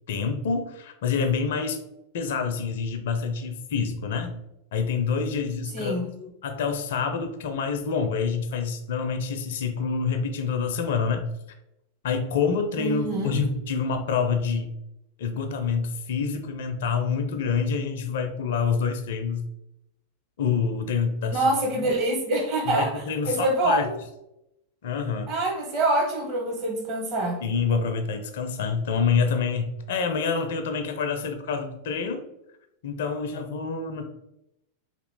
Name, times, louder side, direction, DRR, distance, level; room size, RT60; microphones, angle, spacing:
voice 1, 0.1-1.8 2.1-4.4 4.7-11.3 12.0-14.7 15.2-19.5 20.4-21.4 22.7-23.9 24.8-25.3 27.4-32.2 32.8-34.1, left 5 dB, 55° left, 6 dB, 0.4 m, -27 dB
voice 2, 5.7-6.1 12.8-13.4 21.3-23.9 25.3-27.4, right 2 dB, 40° right, -1 dB, 1.1 m, -25 dB
2.9 x 2.3 x 3.5 m, 0.84 s
figure-of-eight pair, 90°, 0 cm